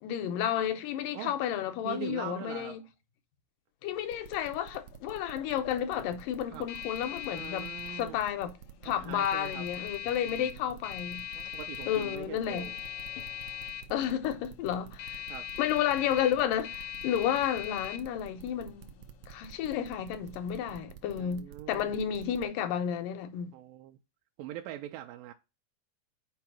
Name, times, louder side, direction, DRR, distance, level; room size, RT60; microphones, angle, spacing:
voice 1, 0.0-2.8 3.8-7.7 8.0-8.5 8.8-11.3 11.9-12.7 13.9-15.2 15.6-23.5, left 10 dB, 85° left, 2.4 m, -32 dB
voice 2, 1.9-2.8 6.4-6.7 7.3-8.2 8.9-9.7 10.2-10.6 11.3-12.8 15.3-15.5 21.2-22.1 23.5-24.0 24.4-25.3, right 12 dB, 90° right, 2.3 m, -42 dB
sound 1, 4.0-20.8, left 11 dB, 70° left, 1.9 m, -42 dB
sound 2, 4.1-22.4, right 11 dB, 70° right, 1.7 m, -49 dB
5.7 x 4.8 x 5.9 m
omnidirectional pair, 3.8 m